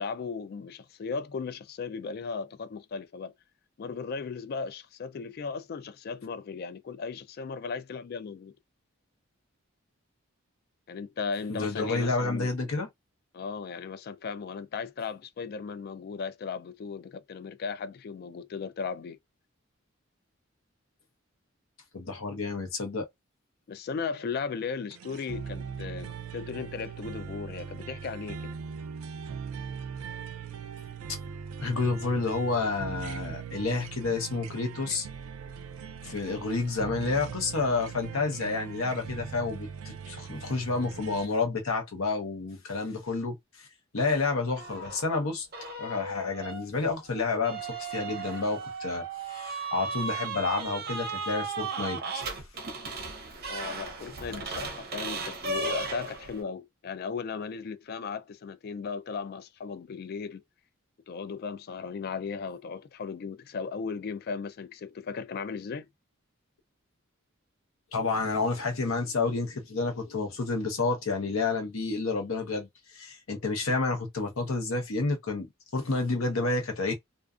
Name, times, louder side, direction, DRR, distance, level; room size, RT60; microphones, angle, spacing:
voice 1, 0.0-3.3 3.8-8.5 10.9-12.5 13.3-19.2 23.7-28.5 53.5-60.4 61.1-65.9, left 5 dB, 50° left, 0.3 m, -36 dB
voice 2, 11.5-12.9 21.9-23.1 31.6-35.1 36.0-43.4 43.9-45.5 45.8-49.0 49.3-52.2 67.9-72.7 72.9-76.9, left 3 dB, 90° left, 0.8 m, -30 dB
sound 1, 24.9-41.3, right 6 dB, 90° right, 0.4 m, -40 dB
sound 2, 44.5-45.1 45.5-56.4, right 4 dB, 50° right, 0.6 m, -36 dB
2.4 x 2.4 x 2.4 m
head